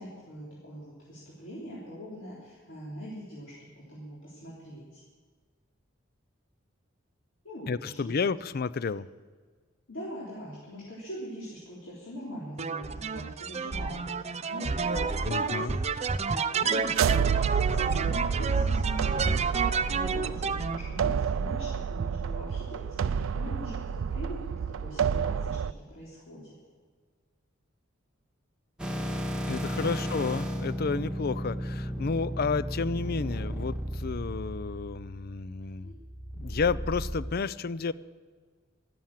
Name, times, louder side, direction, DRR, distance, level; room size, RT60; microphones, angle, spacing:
voice 1, 0.0-3.5 3.9-5.0 7.4-8.1 9.9-15.7 16.3-19.4 19.8-26.6 29.8-30.0 35.8-35.9, equal, 70° left, -7 dB, 3.8 m, -42 dB
voice 2, 7.7-9.1 15.3-15.8 29.5-35.9 36.4-37.9, left 4 dB, 50° left, 18 dB, 0.5 m, -31 dB
sound 1, 12.6-20.8, right 5 dB, 35° right, 0.6 m, -30 dB
sound 2, 16.8-25.7, right 7 dB, 85° right, 0.4 m, -29 dB
sound 3, 28.8-37.2, equal, 5° right, 1.5 m, -34 dB
13.0 x 13.0 x 7.4 m, 1.5 s
head